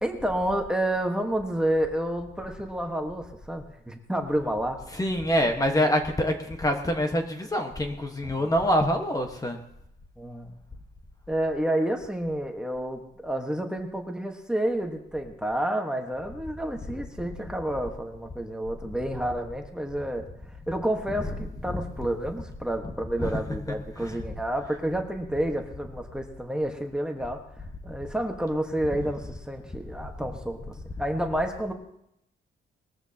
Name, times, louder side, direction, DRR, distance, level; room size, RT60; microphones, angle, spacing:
voice 1, 0.0-4.8 8.2-8.5 10.2-10.5 11.3-20.2 20.7-27.4 27.8-31.7, right 1 dB, 5° right, 3 dB, 1.3 m, -29 dB
voice 2, 4.9-9.6 21.7-21.8 22.8-22.9 23.2-23.6 24.0-24.2 28.9-29.1, equal, 20° left, 4 dB, 1.3 m, -26 dB
20.5 x 14.0 x 2.9 m, 0.77 s
cardioid pair, 130°, 20 cm